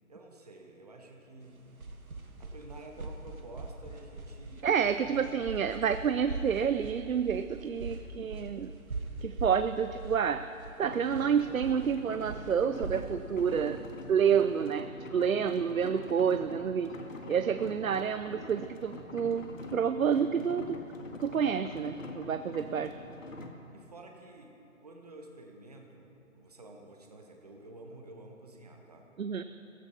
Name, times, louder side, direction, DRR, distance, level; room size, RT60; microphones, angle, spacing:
voice 1, 0.0-1.6 2.4-4.7 5.0-5.2 5.7-5.9 23.7-29.1 29.4-29.5, right 2 dB, 30° right, 2 dB, 1.4 m, -50 dB
sound 1, 1.5-14.7, right 3 dB, 90° right, 2.0 m, -42 dB
voice 2, 4.6-8.7 9.2-10.5 10.8-16.9 17.3-20.9 21.2-23.0 29.2-29.4, right 7 dB, 75° right, 10 dB, 0.7 m, -29 dB
sound 2, 10.8-23.5, left 2 dB, 65° left, 1.9 m, -45 dB
16.5 x 15.0 x 5.9 m, 2.8 s
hypercardioid pair, 175°, 42 cm